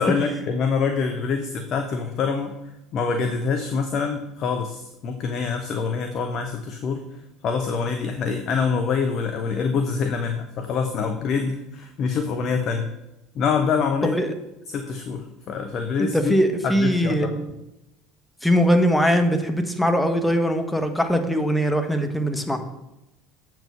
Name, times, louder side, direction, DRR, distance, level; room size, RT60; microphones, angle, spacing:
voice 1, 0.0-2.6 2.9-7.2 7.4-12.9 13.3-14.2 14.7-16.3 16.6-17.4, left 5 dB, 50° left, 6 dB, 0.8 m, -25 dB
voice 2, 16.0-17.5 18.4-22.6, equal, 5° left, 6 dB, 1.2 m, -21 dB
7.7 x 4.7 x 7.0 m, 0.91 s
figure-of-eight pair, 65°, 0 cm